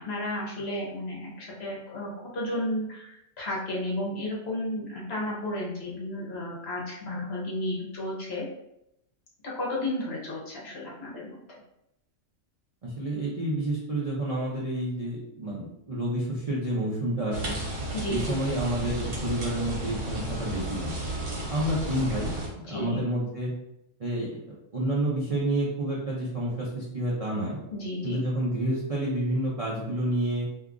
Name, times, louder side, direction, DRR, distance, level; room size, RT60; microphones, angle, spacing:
voice 1, 0.0-8.5 9.4-11.4 17.9-18.3 22.7-23.0 27.7-28.2, left 1 dB, 55° left, -4 dB, 1.0 m, -33 dB
voice 2, 12.8-17.6 18.1-21.0 21.5-23.5 24.0-27.6 28.0-30.5, right 1 dB, 45° right, -5 dB, 0.4 m, -29 dB
sound 1, 17.3-22.5, right 1 dB, 65° right, 1.3 m, -33 dB
2.7 x 2.3 x 3.6 m, 0.82 s
omnidirectional pair, 1.4 m